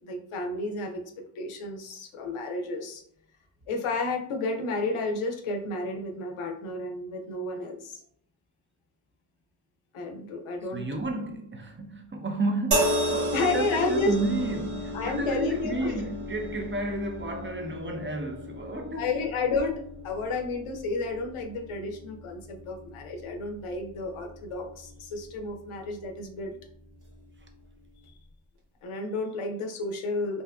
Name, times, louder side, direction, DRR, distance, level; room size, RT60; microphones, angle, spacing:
voice 1, 0.0-3.0 3.7-8.0 9.9-10.8 13.3-14.1 14.9-16.0 19.0-26.5 28.8-30.4, left 3 dB, 85° left, 0.6 m, -31 dB
voice 2, 10.7-19.1, right 2 dB, 25° right, 0.5 m, -32 dB
sound 1, 12.7-26.0 27.0-27.2, equal, 80° right, 0.9 m, -34 dB
2.6 x 2.3 x 2.3 m
cardioid pair, 45°, 49 cm